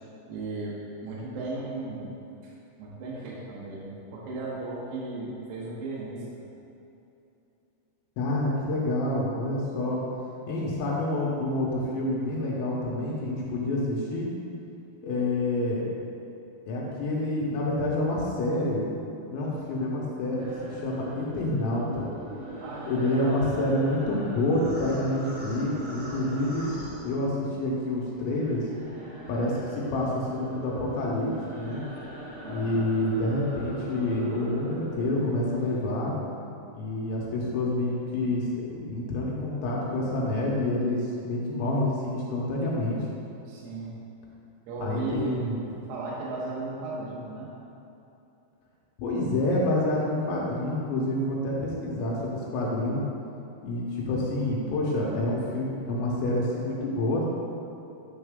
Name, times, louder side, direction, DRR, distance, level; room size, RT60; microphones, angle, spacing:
voice 1, 0.3-2.1 2.4-2.5 2.8-6.4 22.6-23.4 32.4-32.8 43.5-44.0 44.7-47.5, right 3 dB, 75° right, -5 dB, 3.1 m, -36 dB
voice 2, 8.2-10.0 10.5-14.3 15.0-15.9 16.7-18.8 19.3-22.1 22.8-26.7 27.0-28.7 29.3-31.8 32.5-36.1 36.7-43.0 44.8-45.6 49.0-53.0 53.6-57.2, left 1 dB, 80° left, -4 dB, 3.0 m, -28 dB
sound 1, 20.4-27.7 28.0-36.0, right 1 dB, 55° right, 2.0 m, -41 dB
9.5 x 3.9 x 3.6 m, 2.8 s
omnidirectional pair, 5.3 m